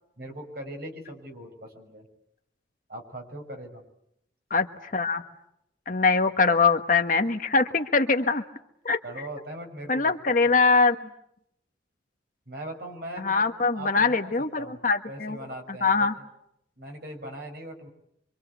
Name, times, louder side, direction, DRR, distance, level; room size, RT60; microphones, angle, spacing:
voice 1, 0.2-2.1 2.9-3.8 9.0-10.2 10.4-10.5 12.5-14.3 14.6-14.8 15.1-16.2 16.8-17.9, right 1 dB, 55° right, 3 dB, 6.0 m, -40 dB
voice 2, 4.5-5.2 5.9-8.4 8.8-9.0 9.9-11.1 13.2-15.4 15.8-16.1, left 4 dB, 45° left, 6 dB, 1.4 m, -23 dB
26.0 x 25.5 x 8.2 m, 0.79 s
head